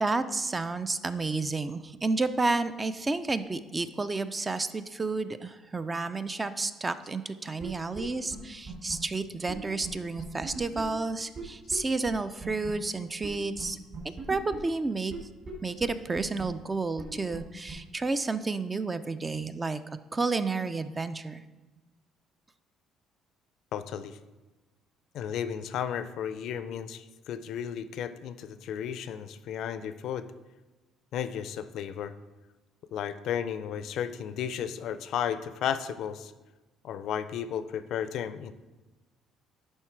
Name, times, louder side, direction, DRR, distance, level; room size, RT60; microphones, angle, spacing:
voice 1, 0.0-13.8 14.3-15.1 15.6-19.8 20.1-21.4, right 3 dB, 20° right, 12 dB, 0.3 m, -31 dB
sound 1, 7.6-7.7 7.9-8.0 8.3-8.4 8.7-8.9 9.5-9.6 9.8-9.9 10.2-10.8 11.3-11.4 11.7-11.8 12.1-12.2 12.4-12.7 13.2-13.3 13.6-13.7 13.9-14.6 15.1-15.2 15.4-15.5 15.8-15.9 16.2-16.4 17.0-17.1 17.3-17.4 17.7-17.8, right 4 dB, 40° right, 2.3 m, -39 dB
voice 2, 23.7-24.2 25.1-30.3 31.1-32.1 32.9-36.3 36.8-38.5, left 9 dB, 65° left, 12 dB, 0.4 m, -34 dB
11.0 x 3.6 x 4.5 m, 1.2 s
cardioid pair, 130°, 0 cm